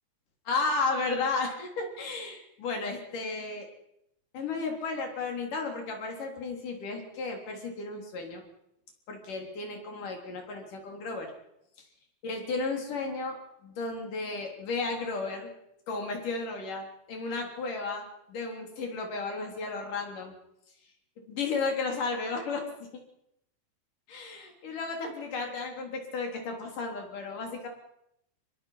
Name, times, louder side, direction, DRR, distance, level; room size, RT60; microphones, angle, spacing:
voice 1, 0.5-3.7 4.3-8.4 9.1-11.3 12.2-15.5 15.9-20.4 21.3-22.6 22.9-23.0 24.1-27.7, left 3 dB, 60° left, 2 dB, 5.1 m, -33 dB
25.0 x 22.0 x 5.8 m, 0.79 s
omnidirectional pair, 4.3 m